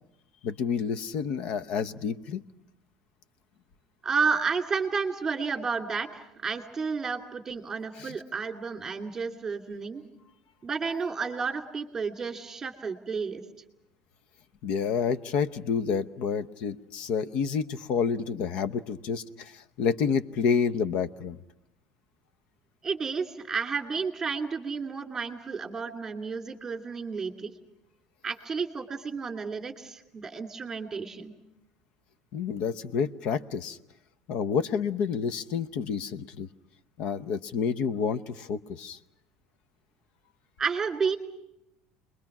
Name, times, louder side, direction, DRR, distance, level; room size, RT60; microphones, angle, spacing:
voice 1, 0.4-2.4 8.0-8.2 14.6-21.4 32.3-33.8 34.3-36.5 37.0-39.0, left 6 dB, 55° left, 13 dB, 0.9 m, -29 dB
voice 2, 4.0-10.0 10.6-13.4 22.8-27.5 28.2-31.3 40.6-41.2, right 5 dB, 15° right, 4 dB, 2.5 m, -31 dB
29.5 x 22.0 x 6.0 m, 0.85 s
cardioid pair, 150°, 2 cm